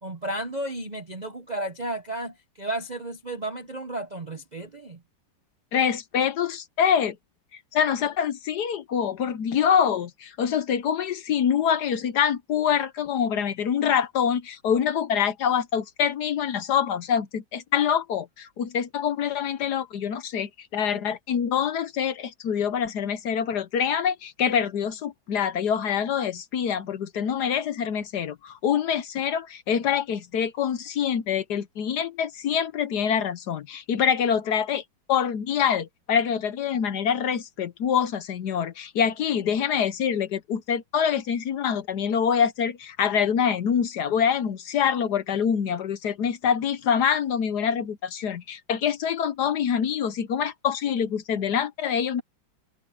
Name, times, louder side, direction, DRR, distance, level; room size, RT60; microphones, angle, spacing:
voice 1, 0.0-5.0, right 1 dB, 35° right, 0.6 m, -33 dB
voice 2, 5.7-7.2 7.7-34.8 35.1-52.2, left 8 dB, 60° left, 1.3 m, -25 dB
omnidirectional pair, 2.1 m